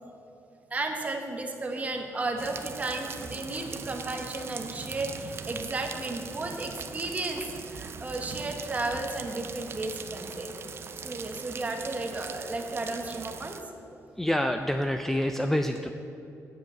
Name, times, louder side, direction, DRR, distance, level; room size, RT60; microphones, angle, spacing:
voice 1, 0.7-10.5 11.0-13.6, right 2 dB, 25° right, 3 dB, 1.2 m, -33 dB
sound 1, 2.4-13.6, right 6 dB, 45° right, 0.6 m, -41 dB
voice 2, 14.2-15.9, left 1 dB, 5° left, 6 dB, 0.4 m, -27 dB
9.3 x 7.8 x 7.4 m, 2.8 s
wide cardioid pair, 155°, 6 cm